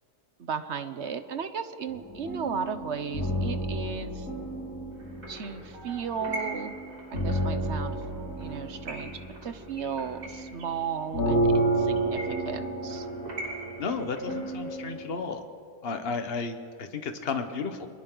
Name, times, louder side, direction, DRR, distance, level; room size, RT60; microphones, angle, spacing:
voice 1, 0.4-4.3 5.3-6.7 7.1-8.0 8.4-13.1, right 6 dB, 50° right, 10 dB, 1.0 m, -35 dB
sound 1, 1.9-15.1, right 1 dB, 60° left, 5.6 m, -31 dB
sound 2, 5.0-14.7, equal, 70° right, 4.4 m, -42 dB
voice 2, 13.8-15.4 15.8-17.9, left 4 dB, 40° left, 7 dB, 1.4 m, -33 dB
29.5 x 22.0 x 4.0 m, 2.4 s
omnidirectional pair, 1.7 m